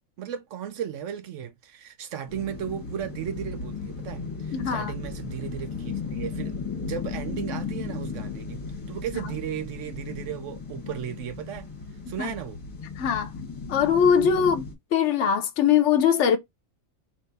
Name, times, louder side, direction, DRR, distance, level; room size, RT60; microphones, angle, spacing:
voice 1, 0.2-8.6 8.9-11.7 12.1-12.6 14.4-14.5, right 9 dB, 70° right, 0.9 m, -35 dB
sound 1, 2.3-14.7, left 5 dB, 25° left, 1.4 m, -36 dB
voice 2, 4.5-5.0 9.1-9.3 12.2-12.3 13.0-13.3 13.7-16.4, left 7 dB, 65° left, 0.9 m, -22 dB
3.3 x 3.0 x 3.9 m
omnidirectional pair, 1.4 m